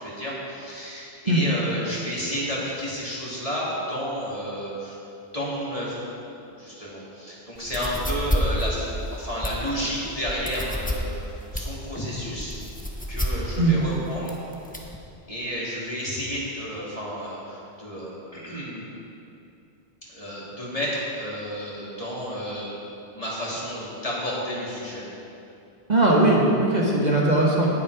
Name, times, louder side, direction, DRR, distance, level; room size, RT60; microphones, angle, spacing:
voice 1, 0.0-5.0 5.3-6.0 6.6-12.5 13.1-14.3 15.3-18.9 20.1-22.8 23.1-25.0 27.4-27.7, equal, 35° left, -7 dB, 3.0 m, -31 dB
sound 1, 7.5-15.0, equal, 10° left, 1.0 m, -30 dB
voice 2, 25.9-27.7, right 2 dB, 40° right, -4 dB, 1.5 m, -19 dB
17.5 x 7.7 x 4.9 m, 2.7 s
omnidirectional pair, 1.1 m